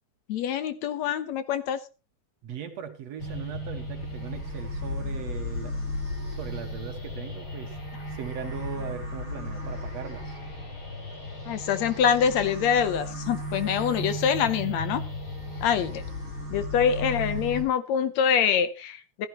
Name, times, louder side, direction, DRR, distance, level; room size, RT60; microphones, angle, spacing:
voice 1, 0.3-1.8 11.5-15.0 15.6-16.1 16.5-19.3, left 8 dB, 70° left, 12 dB, 2.0 m, -25 dB
voice 2, 2.4-5.7 6.3-7.8 8.1-10.4, right 8 dB, 60° right, 6 dB, 2.7 m, -39 dB
sound 1, 3.2-17.6, left 1 dB, 40° left, 4.7 m, -35 dB
15.0 x 13.5 x 3.0 m, 0.29 s
omnidirectional pair, 3.4 m